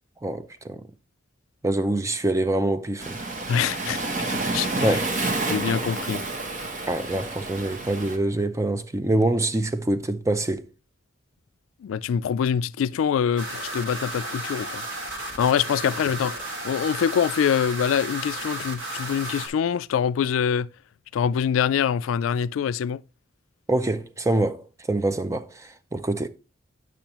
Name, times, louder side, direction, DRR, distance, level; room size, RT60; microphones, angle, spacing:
voice 1, 0.2-0.8 1.6-3.2 4.8-5.1 6.9-10.6 23.7-26.3, right 1 dB, 15° right, 0.4 m, -25 dB
Waves surf, 3.0-8.2, right 2 dB, 40° right, 0.8 m, -29 dB
voice 2, 3.5-4.0 4.3-5.0 5.5-6.2 11.8-14.8 15.4-20.7 21.1-23.0, left 8 dB, 85° left, 0.3 m, -25 dB
sound 1, 13.4-19.5, right 2 dB, 70° right, 1.9 m, -33 dB
8.7 x 6.0 x 2.9 m
head